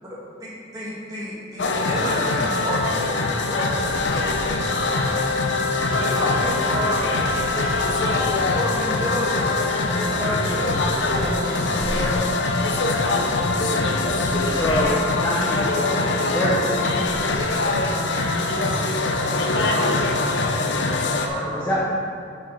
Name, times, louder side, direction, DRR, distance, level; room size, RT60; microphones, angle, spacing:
voice 1, 0.0-3.0 3.3-4.6 6.0-7.0 7.5-7.7 8.1-9.5 10.1-12.6 14.8-14.9 19.5-20.1 21.2-21.7, equal, 20° right, -7 dB, 1.9 m, -31 dB
sound 1, 1.6-21.3, left 3 dB, 65° left, 0.6 m, -23 dB
sound 2, 3.7-14.6, right 1 dB, 75° right, 0.9 m, -40 dB
voice 2, 13.6-14.8 15.7-16.8, equal, 45° left, -4 dB, 1.5 m, -30 dB
voice 3, 14.5-15.8 16.3-17.1 17.5-17.7 19.3-20.4 21.5-21.8, equal, 10° left, -6 dB, 0.9 m, -26 dB
8.0 x 4.5 x 5.4 m, 2.5 s
head